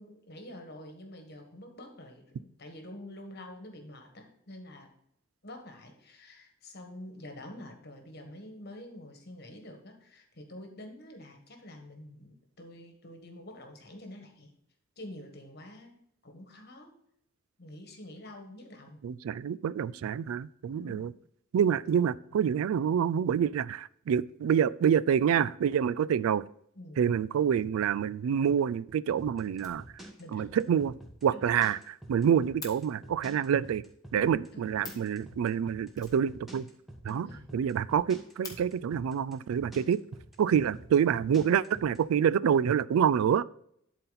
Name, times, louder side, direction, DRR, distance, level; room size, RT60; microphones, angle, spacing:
voice 1, 0.0-4.9 5.4-14.5 15.0-15.9 16.2-17.0 17.6-19.0 20.7-21.1 26.7-27.0 30.2-30.5 31.3-31.5 34.5-35.1 37.1-37.5, left 1 dB, 50° left, 4 dB, 1.5 m, -47 dB
voice 2, 19.0-21.1 21.5-26.4 27.0-29.8 30.3-30.9 31.2-33.8 34.1-36.7 37.0-37.3 37.5-40.0 40.4-43.4, right 8 dB, 85° right, 20 dB, 0.3 m, -27 dB
sound 1, 29.2-42.0, right 1 dB, ahead, 1.4 m, -47 dB
Fire, 29.5-30.4 30.7-30.8 31.1-31.2 31.4-31.5 31.8-32.8 34.5-34.6 34.8-35.2 35.9-36.9 37.2-37.3 37.5-37.6 38.0-38.6 39.6-39.7 40.3-40.9, left 4 dB, 15° left, 1.3 m, -48 dB
11.5 x 4.1 x 4.0 m, 0.71 s
head